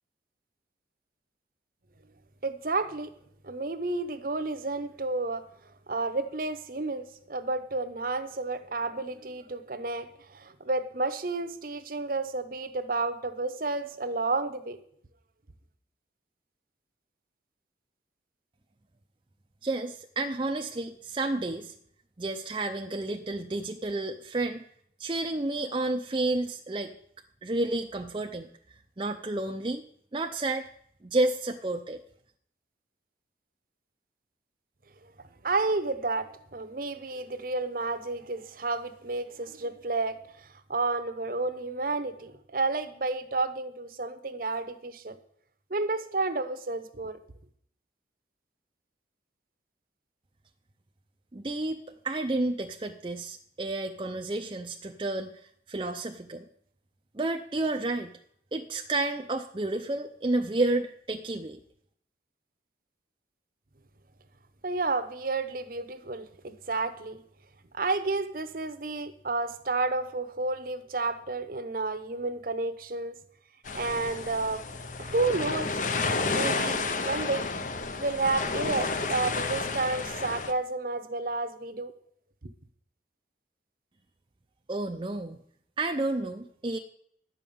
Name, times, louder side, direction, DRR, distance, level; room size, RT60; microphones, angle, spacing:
voice 1, 2.4-3.1 3.4-5.5 5.9-14.8 35.4-45.2 45.7-47.2 64.6-67.2 67.7-73.2 73.7-74.6 75.0-75.8 76.3-77.5 78.0-81.9, right 3 dB, 50° right, 11 dB, 0.9 m, -31 dB
voice 2, 19.6-21.7 22.2-24.6 25.0-26.9 27.4-28.5 29.0-29.8 30.1-30.7 31.0-32.0 51.3-56.4 57.1-58.2 58.5-61.6 84.7-85.4 85.8-86.8, right 2 dB, 25° right, 3 dB, 0.5 m, -31 dB
sound 1, 73.7-80.5, left 3 dB, 45° left, 0.7 m, -31 dB
12.0 x 5.4 x 8.5 m, 0.65 s
head